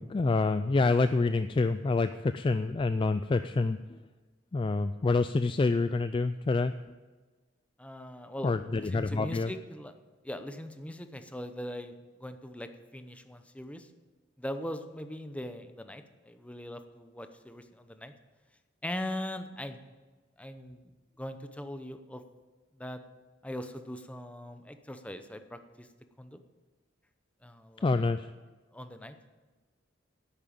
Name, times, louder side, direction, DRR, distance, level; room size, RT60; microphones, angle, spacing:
voice 1, 0.0-4.0 4.5-6.7 8.4-9.5 27.8-28.3, left 3 dB, 25° left, 11 dB, 0.3 m, -27 dB
voice 2, 7.8-9.9 10.2-13.9 14.4-18.1 18.8-19.8 20.4-20.9 21.2-22.2 22.8-23.0 23.4-25.9 26.2-26.4 27.4-28.1 28.7-29.2, left 1 dB, 5° left, 8 dB, 0.8 m, -40 dB
11.0 x 8.9 x 8.6 m, 1.3 s
head